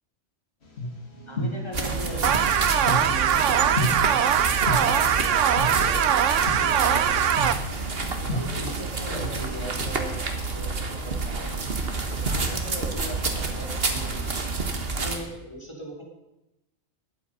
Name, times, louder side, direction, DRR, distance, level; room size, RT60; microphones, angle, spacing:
sound 1, 0.6-3.3 3.8-3.9 4.7-4.8 5.6-5.7 6.5-6.6 7.4-7.5 8.3-9.8 10.1-11.8, left 1 dB, 60° left, 2.3 m, -31 dB
voice 1, 1.3-4.0 4.6-7.3 8.2-10.1 10.5-11.6 12.1-14.4 15.0-16.0, right 1 dB, 25° left, -1 dB, 3.5 m, -39 dB
sound 2, 1.7-15.2, right 3 dB, 55° right, 1.7 m, -29 dB
sound 3, 2.2-7.5, right 9 dB, 90° right, 1.1 m, -22 dB
21.0 x 8.6 x 5.4 m, 0.95 s
omnidirectional pair, 1.2 m